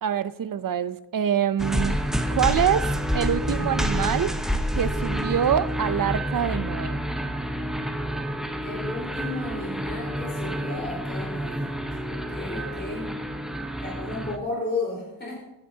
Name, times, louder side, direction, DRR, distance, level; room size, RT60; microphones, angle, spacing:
voice 1, 0.0-2.0 2.3-2.9 3.1-4.3 4.8-7.0, right 8 dB, 50° right, 14 dB, 0.5 m, -25 dB
sound 1, 1.6-14.4, equal, ahead, 0.7 m, -28 dB
voice 2, 8.6-11.7 12.1-13.1 13.8-15.4, left 2 dB, 25° left, -4 dB, 4.2 m, -33 dB
15.5 x 10.5 x 2.8 m, 0.93 s
wide cardioid pair, 140°, 45 cm